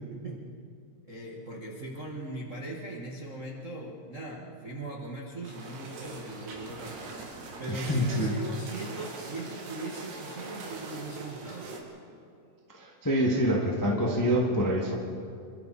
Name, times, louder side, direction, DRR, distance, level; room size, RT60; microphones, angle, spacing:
voice 1, 1.0-7.0 7.3-11.7, right 2 dB, 60° right, -2 dB, 0.7 m, -39 dB
sound 1, 5.4-11.8, right 3 dB, 90° right, 4.7 m, -42 dB
voice 2, 7.7-8.3 12.8-14.9, equal, 15° left, -2 dB, 0.6 m, -26 dB
27.5 x 24.0 x 4.4 m, 2.3 s
omnidirectional pair, 4.7 m